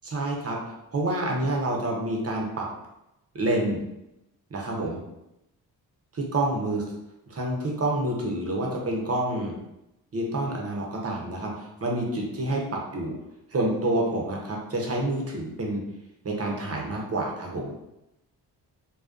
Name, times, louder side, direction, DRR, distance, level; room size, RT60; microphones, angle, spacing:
voice 1, 0.0-0.6 0.9-2.7 3.3-3.8 4.5-5.0 6.1-6.8 7.3-9.5 10.1-13.1 13.5-15.8 16.2-17.7, right 1 dB, 35° right, -1 dB, 0.8 m, -28 dB
2.3 x 2.2 x 2.4 m, 0.88 s
supercardioid pair, 45°, 43 cm